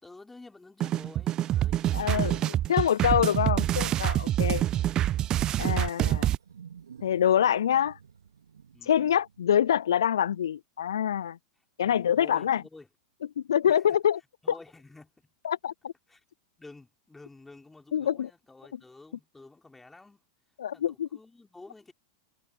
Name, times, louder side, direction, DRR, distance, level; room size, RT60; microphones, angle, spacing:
voice 1, 0.0-2.6 8.7-9.2 11.8-12.9 13.6-14.0 14.4-15.3 16.1-16.2 16.6-20.2 20.7-21.9, left 3 dB, 10° left, 3.9 m, -50 dB
sound 1, 0.8-6.4, right 12 dB, 35° right, 0.3 m, -26 dB
voice 2, 1.9-4.6 5.6-6.3 7.0-8.0 8.9-11.4 11.8-12.6 13.5-14.2 15.4-15.9 17.9-18.3 20.6-21.1, left 9 dB, 75° left, 0.3 m, -25 dB
Wild animals, 5.9-10.5, right 7 dB, 80° right, 4.1 m, -52 dB
hypercardioid pair, 95°, 2 cm